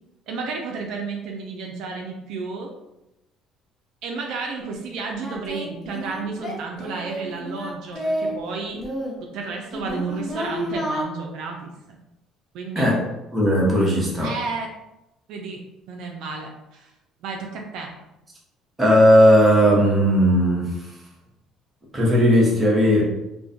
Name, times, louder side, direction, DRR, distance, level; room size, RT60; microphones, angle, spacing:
voice 1, 0.3-2.7 4.0-8.8 9.2-12.0 12.5-12.9 14.2-14.7 15.3-15.6 15.9-16.9 17.2-17.9, right 4 dB, 75° right, 1 dB, 0.3 m, -32 dB
Singing, 4.6-4.7 5.2-8.4 8.7-11.0, equal, 15° left, 0.7 m, -30 dB
voice 2, 13.3-14.3 18.8-20.7 21.9-23.0, equal, 15° right, -5 dB, 0.8 m, -16 dB
2.3 x 2.1 x 2.5 m, 0.94 s
cardioid pair, 110°, 0 cm